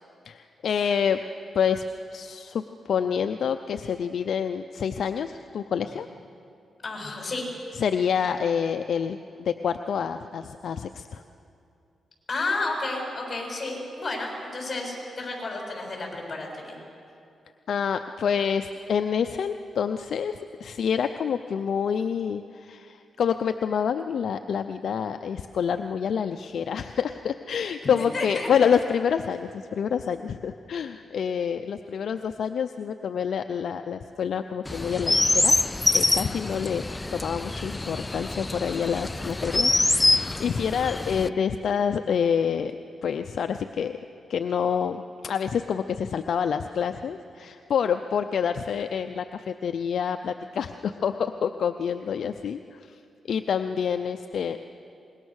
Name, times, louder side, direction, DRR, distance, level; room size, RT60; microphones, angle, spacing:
voice 1, 0.2-1.2 1.5-1.8 2.1-6.1 7.8-11.2 17.7-35.6 35.9-36.8 37.1-44.0 44.3-53.0 53.3-54.6, left 7 dB, 70° left, 8 dB, 0.6 m, -27 dB
voice 2, 6.8-7.5 12.3-16.8 28.1-28.5, left 2 dB, 35° left, 0 dB, 6.8 m, -31 dB
Chirp tweet, 34.6-41.3, left 2 dB, 20° left, 0.4 m, -25 dB
25.0 x 21.5 x 6.4 m, 2.5 s
cardioid pair, 85°, 0 cm